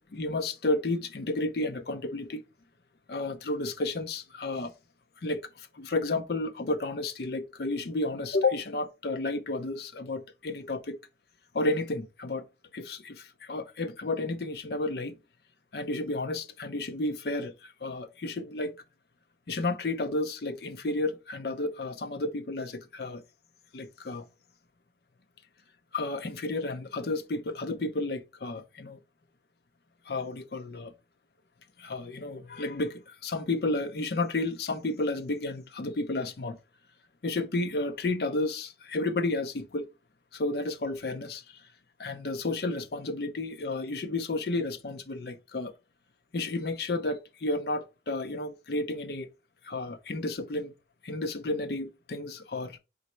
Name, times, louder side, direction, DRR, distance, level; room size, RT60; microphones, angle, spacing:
voice 1, 0.1-2.4 3.1-4.7 5.2-11.0 11.5-12.5 12.7-15.1 15.7-18.7 19.5-23.2 23.7-24.3 25.9-29.0 30.1-30.9 31.8-36.6 37.2-39.9 40.3-41.6 42.0-45.7 46.3-49.3 49.6-50.7 51.0-52.8, left 2 dB, 60° left, 0.6 m, -32 dB
4.0 x 3.1 x 4.3 m
head